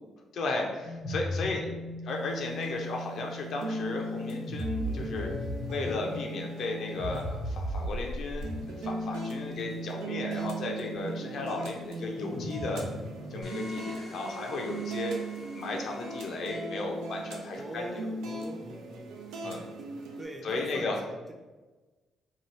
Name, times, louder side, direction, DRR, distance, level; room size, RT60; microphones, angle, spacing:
voice 1, 0.3-1.7 2.0-5.3 5.7-12.9 13.3-15.2 15.5-17.9 19.4-19.7 20.4-21.0, left 3 dB, 65° left, 1 dB, 0.5 m, -35 dB
sound 1, 0.8-13.7, equal, 90° left, 1.1 m, -38 dB
sound 2, 2.1-20.2, right 2 dB, 90° right, 0.4 m, -39 dB
sound 3, 13.4-16.5, equal, 35° right, 1.0 m, -48 dB
voice 2, 17.6-20.9, right 1 dB, 15° right, 1 dB, 0.5 m, -43 dB
2.7 x 2.3 x 3.2 m, 1.2 s
cardioid pair, 90°, 0 cm